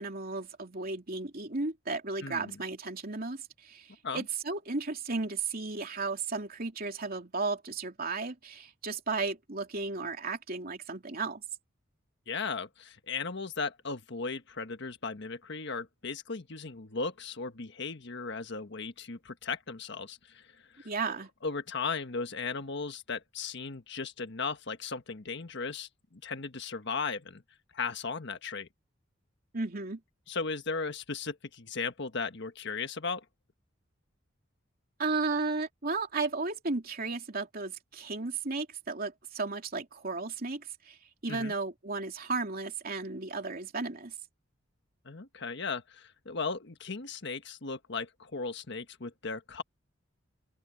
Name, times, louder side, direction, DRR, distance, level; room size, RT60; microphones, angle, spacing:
voice 1, 0.0-11.4 20.8-21.3 29.5-30.0 35.0-41.0 41.2-44.1, right 3 dB, 50° right, 3.0 m, -34 dB
voice 2, 2.2-2.6 4.0-4.2 12.3-20.5 20.7-20.9 21.4-27.4 27.7-28.7 30.3-33.2 41.3-41.5 45.0-49.6, left 4 dB, 60° left, 1.4 m, -36 dB
open air
head